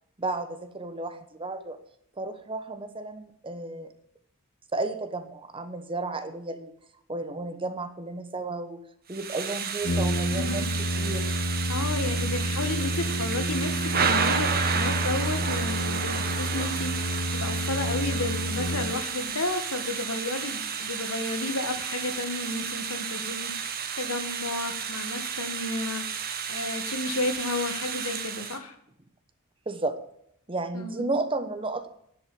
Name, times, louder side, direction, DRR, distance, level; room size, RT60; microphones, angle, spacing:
voice 1, 0.2-1.8 2.2-3.9 4.7-6.7 7.1-8.8 9.1-11.3 29.7-30.0 30.5-31.9, right 2 dB, 25° right, 10 dB, 1.2 m, -33 dB
Thunder / Rain, 9.1-28.6, right 6 dB, 45° right, 1.5 m, -32 dB
Brass instrument, 9.8-19.3, equal, 55° left, 1.3 m, -29 dB
voice 2, 10.3-10.7 11.7-23.7 24.0-28.8 30.7-31.1, left 2 dB, 90° left, 7 dB, 1.9 m, -32 dB
10.5 x 8.0 x 8.7 m, 0.72 s
head